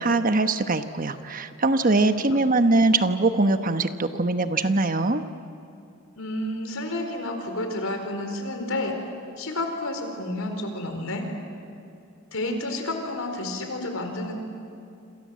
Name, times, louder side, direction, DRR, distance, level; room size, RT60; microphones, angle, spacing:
voice 1, 0.0-5.2, right 2 dB, 40° right, 9 dB, 1.1 m, -22 dB
voice 2, 6.2-9.0 9.4-11.3 12.3-14.3, left 1 dB, 80° left, 5 dB, 4.4 m, -30 dB
28.0 x 26.5 x 7.6 m, 2.6 s
head